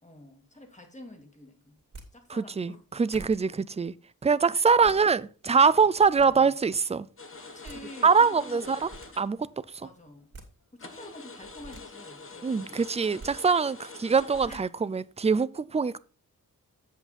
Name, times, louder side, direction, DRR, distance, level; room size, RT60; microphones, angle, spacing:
voice 1, 0.0-1.8 2.1-2.8 4.5-5.2 6.1-6.5 7.5-8.8 9.8-10.3 10.7-12.8 14.5-14.6, left 1 dB, 20° left, 2.2 m, -48 dB
sound 1, 1.8-2.1 2.8-2.9 3.1-3.4 4.6-5.0 5.7-6.3 7.3-7.4 7.6-7.8 8.6-9.1 10.1-10.5 11.3-11.8 13.0-13.3 14.1-14.6, right 3 dB, 45° right, 2.5 m, -46 dB
voice 2, 2.3-3.9 4.2-7.1 8.0-8.9 9.2-9.9 12.4-16.0, right 5 dB, 20° right, 0.4 m, -24 dB
sound 2, 7.2-9.5 9.8-9.9 10.4-10.5 10.8-14.5, left 3 dB, 35° left, 1.3 m, -46 dB
8.1 x 8.1 x 4.2 m
wide cardioid pair, 150°, 36 cm